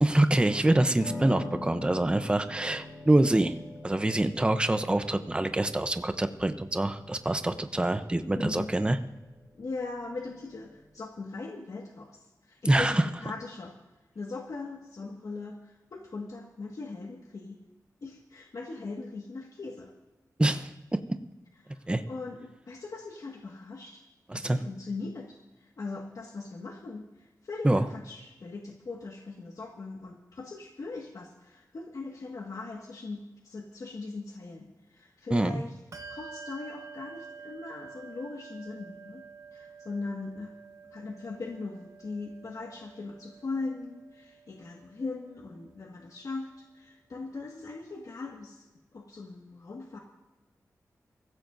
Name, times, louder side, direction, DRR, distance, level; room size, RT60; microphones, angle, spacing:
voice 1, 0.0-3.6 3.8-9.0 12.7-13.0 20.4-21.0 21.9-22.0 24.3-24.6 27.6-27.9 35.3-35.6, right 1 dB, 15° right, 9 dB, 0.7 m, -25 dB
Piano, 1.0-10.9, left 2 dB, 35° left, 6.6 m, -45 dB
voice 2, 8.3-8.7 9.6-13.7 14.2-17.6 18.0-19.9 21.6-24.0 24.3-35.8 36.1-39.2 39.5-40.5 40.9-48.7 48.9-50.0, left 3 dB, 65° left, 0 dB, 1.8 m, -40 dB
Bell, 35.9-45.9, right 5 dB, 55° right, 1.1 m, -49 dB
24.0 x 15.0 x 2.7 m, 1.1 s
wide cardioid pair, 115°, 6 cm